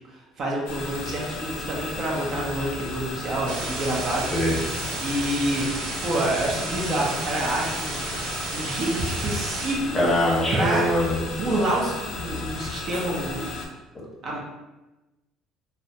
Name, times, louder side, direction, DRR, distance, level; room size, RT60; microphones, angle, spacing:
voice 1, 0.1-4.3 5.0-5.6 6.0-8.2 8.5-10.1 10.5-10.9 11.3-13.5 14.2-14.4, right 1 dB, 50° right, -3 dB, 0.6 m, -27 dB
sound 1, 0.7-13.7, left 3 dB, 80° left, 0.4 m, -35 dB
sound 2, 3.5-9.7, right 3 dB, 90° right, 0.5 m, -33 dB
voice 2, 9.9-11.2, left 1 dB, 15° left, -4 dB, 0.8 m, -22 dB
2.3 x 2.0 x 2.8 m, 1.1 s
cardioid pair, 105°, 0 cm